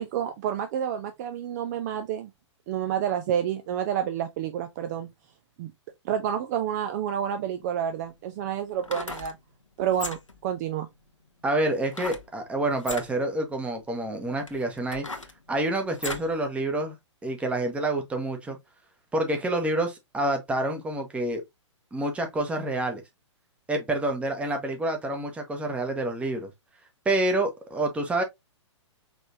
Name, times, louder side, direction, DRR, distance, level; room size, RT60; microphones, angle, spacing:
voice 1, 0.0-2.3 2.7-5.1 5.6-5.7 6.0-9.4 9.8-10.2 10.4-10.9, right 9 dB, 35° right, 0.5 m, -29 dB
sound 1, 7.6-7.7 8.7-9.3 9.9-10.4 11.9-12.3 12.8-13.1 13.8-13.9 14.4-16.3 16.8-16.9, left 3 dB, 85° left, 0.8 m, -36 dB
voice 2, 11.4-15.1 15.5-17.0 17.2-18.6 19.1-21.4 21.9-23.0 23.7-26.5 27.0-28.2, right 1 dB, 10° right, 1.0 m, -28 dB
5.1 x 3.3 x 2.6 m
figure-of-eight pair, 115°, 16 cm